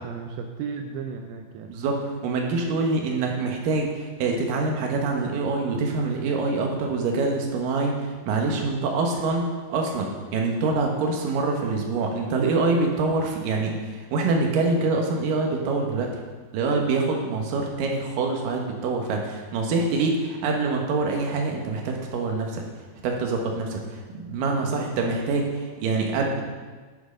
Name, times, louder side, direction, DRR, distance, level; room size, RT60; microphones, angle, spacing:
voice 1, 0.0-1.7 24.6-24.9, right 6 dB, 85° right, 4 dB, 2.1 m, -35 dB
voice 2, 1.7-16.1 16.5-22.6 23.0-26.4, right 3 dB, 65° right, 1 dB, 2.4 m, -25 dB
10.0 x 6.1 x 5.1 m, 1.4 s
omnidirectional pair, 5.1 m